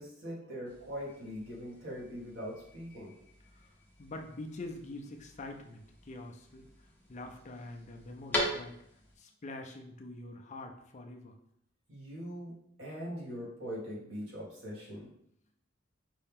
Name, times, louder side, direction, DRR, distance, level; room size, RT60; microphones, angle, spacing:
voice 1, 0.0-3.1 11.9-15.1, equal, 75° right, -5 dB, 1.8 m, -42 dB
sound 1, 0.7-9.2, equal, 10° left, 0.9 m, -42 dB
voice 2, 4.0-6.7 7.1-8.8 9.2-11.3, left 2 dB, 35° left, 3 dB, 0.5 m, -45 dB
5.3 x 2.8 x 3.6 m, 0.71 s
head